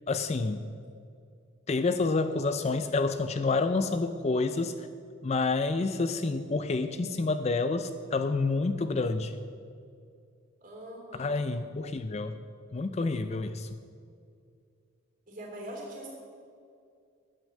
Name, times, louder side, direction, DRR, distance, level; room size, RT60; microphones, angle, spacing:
voice 1, 0.1-0.6 1.7-4.9 5.2-9.4 11.2-12.4 12.7-13.7, left 3 dB, 30° left, 10 dB, 0.3 m, -28 dB
voice 2, 10.6-11.4 15.3-16.1, right 1 dB, 40° right, -1 dB, 3.2 m, -42 dB
10.5 x 8.6 x 7.4 m, 2.4 s
head